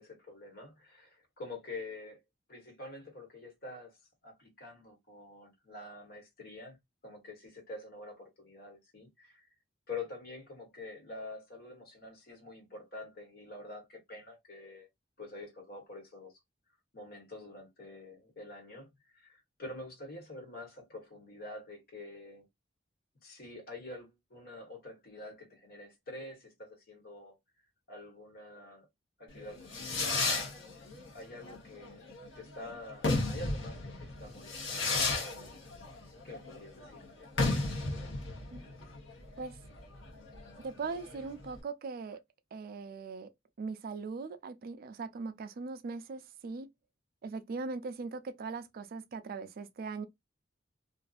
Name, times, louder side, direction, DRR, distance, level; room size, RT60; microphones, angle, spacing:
voice 1, 0.0-2.2 2.5-4.0 4.2-6.8 7.0-9.5 9.9-14.9 15.2-16.3 16.9-22.4 23.2-27.3 27.9-28.9 29.2-30.5 31.1-32.0 32.3-35.6 36.2-37.0, left 2 dB, 55° left, 1.3 m, -47 dB
Fireworks, 29.4-41.6, left 3 dB, 75° left, 1.0 m, -34 dB
voice 2, 40.6-42.2 42.5-43.3 43.6-46.7 47.2-50.0, right 4 dB, 50° right, 0.3 m, -40 dB
2.6 x 2.3 x 2.3 m
head